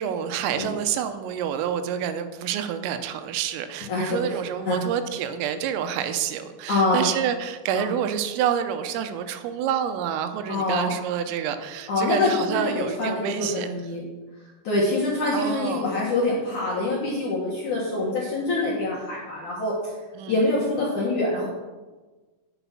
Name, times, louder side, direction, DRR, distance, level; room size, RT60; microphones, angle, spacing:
voice 1, 0.0-13.7 15.3-15.9 20.2-20.3, right 8 dB, 90° right, 9 dB, 3.3 m, -28 dB
voice 2, 3.9-4.4 4.6-4.8 6.7-7.0 7.7-7.9 10.5-11.0 11.9-14.0 14.6-19.9 20.3-21.5, left 2 dB, 65° left, -5 dB, 2.0 m, -25 dB
11.0 x 7.1 x 5.8 m, 1.3 s
omnidirectional pair, 5.9 m